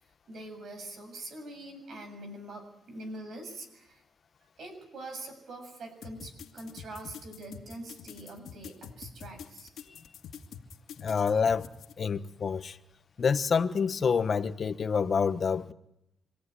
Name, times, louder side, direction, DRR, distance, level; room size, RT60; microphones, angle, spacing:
voice 1, 0.3-4.0 4.6-9.7, right 2 dB, 60° right, 7 dB, 7.3 m, -44 dB
sound 1, 6.0-11.9, left 7 dB, 75° left, 2.3 m, -46 dB
voice 2, 11.0-11.6 12.0-12.8 13.2-15.7, left 6 dB, 45° left, 11 dB, 1.2 m, -27 dB
26.5 x 17.0 x 9.9 m, 0.85 s
cardioid pair, 90°, 0 cm